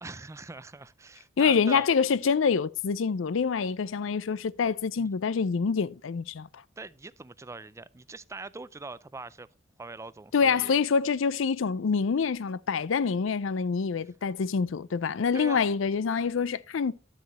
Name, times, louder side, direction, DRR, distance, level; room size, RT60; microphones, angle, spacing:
voice 1, 0.0-1.9 4.9-5.1 6.8-9.5 9.8-10.7 15.3-15.7, right 3 dB, 15° right, 0.4 m, -42 dB
voice 2, 1.4-6.5 10.3-16.9, left 5 dB, 70° left, 0.5 m, -26 dB
11.5 x 8.2 x 3.0 m
head